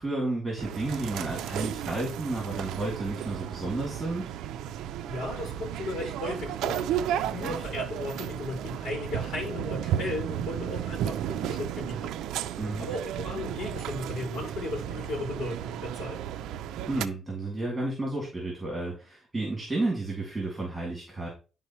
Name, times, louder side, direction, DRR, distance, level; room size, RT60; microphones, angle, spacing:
voice 1, 0.0-4.2 7.4-7.6 12.6-12.9 16.9-21.3, right 2 dB, 10° right, -3 dB, 2.5 m, -32 dB
sound 1, 0.6-17.1, right 10 dB, 90° right, 0.4 m, -33 dB
voice 2, 5.1-6.8 7.1-12.1 12.4-16.2, left 2 dB, 65° left, -2 dB, 2.8 m, -36 dB
11.0 x 3.9 x 3.1 m, 0.34 s
cardioid pair, 160°, 0 cm